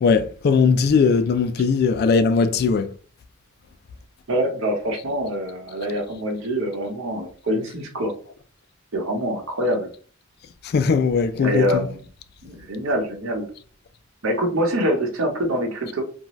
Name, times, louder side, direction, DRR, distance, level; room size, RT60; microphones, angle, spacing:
voice 1, 0.0-2.9 10.6-11.9, left 5 dB, 50° left, 0.3 m, -19 dB
voice 2, 4.3-8.1 8.9-9.9 11.4-12.0 12.4-13.5 14.2-16.0, equal, 75° right, 1.0 m, -25 dB
2.6 x 2.2 x 3.1 m
head